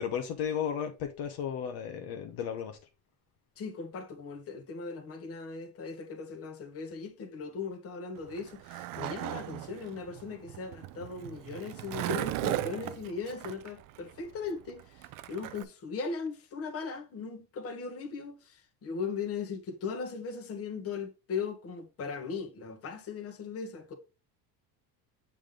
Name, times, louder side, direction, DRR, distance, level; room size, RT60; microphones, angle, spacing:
voice 1, 0.0-2.8, left 8 dB, 60° left, 1.0 m, -34 dB
voice 2, 3.6-23.9, left 5 dB, 35° left, 1.3 m, -38 dB
Skateboard, 8.2-15.6, right 15 dB, 55° right, 0.5 m, -37 dB
7.3 x 3.4 x 3.7 m
cardioid pair, 155°, 42 cm